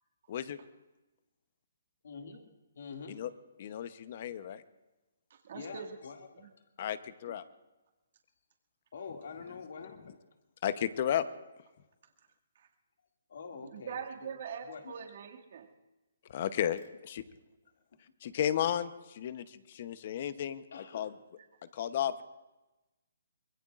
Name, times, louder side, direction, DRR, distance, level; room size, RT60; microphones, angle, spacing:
voice 1, 0.3-0.6 3.1-3.3 3.6-4.6 6.8-7.4 10.6-11.2 16.3-17.2 18.2-21.2 21.7-22.2, left 10 dB, 45° left, 13 dB, 0.9 m, -33 dB
voice 2, 2.0-2.5 2.7-3.2 5.5-6.5 8.9-10.2 13.3-14.0 14.7-14.9 20.7-21.1, left 5 dB, 65° left, 3 dB, 2.3 m, -45 dB
voice 3, 5.4-6.0 6.3-6.5 13.5-15.7, right 7 dB, 55° right, 1 dB, 2.2 m, -43 dB
25.0 x 21.5 x 2.5 m, 1.1 s
hypercardioid pair, 150°, 0 cm